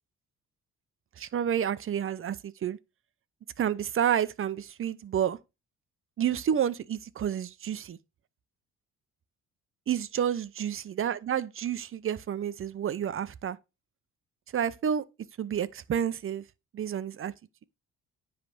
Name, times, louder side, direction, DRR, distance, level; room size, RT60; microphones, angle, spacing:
voice 1, 1.2-2.8 3.6-5.4 6.2-8.0 9.9-13.6 14.5-15.0 15.4-16.4 16.7-17.3, right 9 dB, 45° right, 0.7 m, -30 dB
9.6 x 3.4 x 5.5 m
cardioid pair, 90°, 30 cm